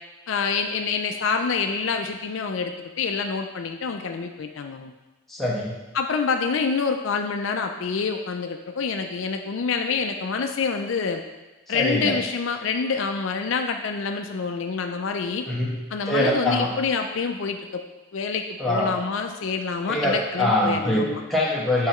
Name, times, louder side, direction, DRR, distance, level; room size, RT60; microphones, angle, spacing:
voice 1, 0.3-4.9 5.9-11.2 11.7-15.4 15.9-17.8 18.1-21.2, left 5 dB, 60° left, 5 dB, 0.4 m, -27 dB
voice 2, 5.3-5.7 11.7-12.1 15.5-15.8 16.1-16.7 18.6-18.9 19.9-21.9, left 1 dB, ahead, -6 dB, 1.2 m, -23 dB
7.6 x 5.4 x 3.0 m, 1.1 s
head